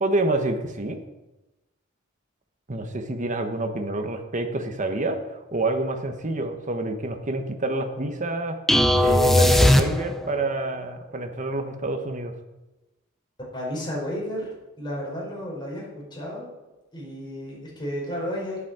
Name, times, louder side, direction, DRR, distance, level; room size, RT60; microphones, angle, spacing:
voice 1, 0.0-1.0 2.7-8.6 9.0-12.3, right 2 dB, 40° right, 6 dB, 1.2 m, -28 dB
sound 1, 8.7-10.4, left 1 dB, ahead, 0.7 m, -18 dB
voice 2, 13.5-14.5 14.8-16.5 16.9-18.6, equal, 25° left, -4 dB, 4.9 m, -32 dB
8.3 x 8.3 x 7.6 m, 1.0 s
head